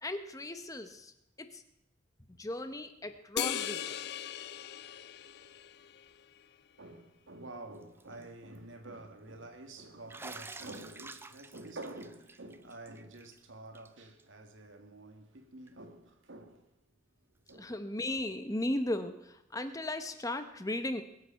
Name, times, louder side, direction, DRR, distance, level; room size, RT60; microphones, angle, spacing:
voice 1, 0.0-1.1 1.4-1.6 2.4-4.0 17.6-21.0, left 1 dB, 20° left, 0.8 m, -36 dB
sound 1, 3.4-6.1, left 10 dB, 60° left, 0.5 m, -38 dB
voice 2, 6.8-16.6 17.5-17.8, right 2 dB, 90° right, 1.8 m, -48 dB
Bathtub (filling or washing), 7.8-8.2 8.5-8.6 10.1-13.4 13.7-13.9 14.2-14.3 15.7-15.8 17.5-17.6, right 3 dB, 10° right, 0.4 m, -49 dB
21.5 x 8.2 x 5.7 m
head